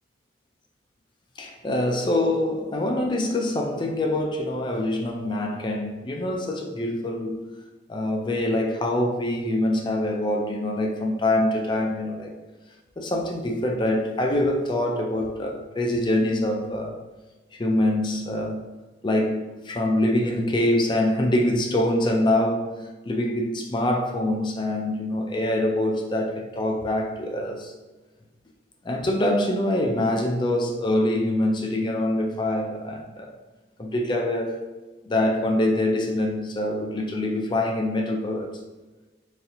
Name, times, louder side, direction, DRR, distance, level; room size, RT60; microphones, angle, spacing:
voice 1, 1.4-7.4 7.9-12.3 13.0-17.0 17.5-18.6 19.0-22.7 23.1-27.7 28.8-33.3 33.8-34.6 35.0-38.5, left 1 dB, 25° left, 2 dB, 0.4 m, -24 dB
4.0 x 2.7 x 2.5 m, 1.2 s
head